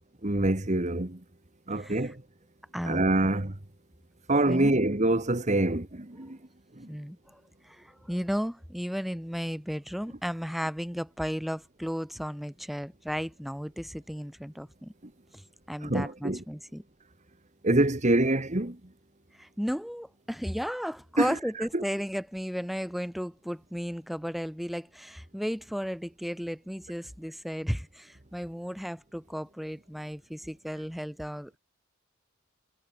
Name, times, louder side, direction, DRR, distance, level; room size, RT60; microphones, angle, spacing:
voice 1, 0.2-1.2 1.7-2.1 2.8-3.5 4.3-6.4 15.8-16.4 17.6-18.8 21.2-21.3 21.7-21.8, right 1 dB, 35° right, 1.8 m, -25 dB
voice 2, 1.7-2.1 2.7-3.3 4.5-4.8 6.9-14.9 15.3-15.4 15.7-16.8 19.3-31.6, equal, ahead, 7.6 m, -34 dB
head